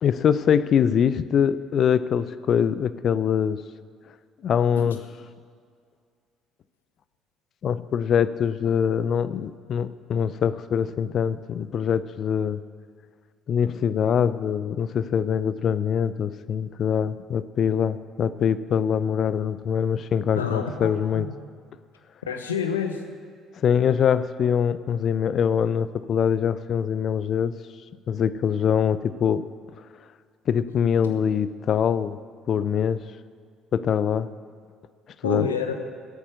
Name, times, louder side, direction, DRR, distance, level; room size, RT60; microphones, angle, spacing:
voice 1, 0.0-3.6 4.4-5.0 7.6-12.6 13.5-21.3 23.6-27.5 28.1-29.5 30.5-32.2 32.5-33.0 33.7-34.3 35.2-35.4, left 8 dB, 50° left, 15 dB, 0.5 m, -23 dB
voice 2, 20.4-21.3 22.3-23.0 31.0-31.2 35.2-35.8, left 6 dB, 80° left, 6 dB, 0.9 m, -28 dB
15.0 x 8.5 x 6.5 m, 2.1 s
figure-of-eight pair, 50°, 0 cm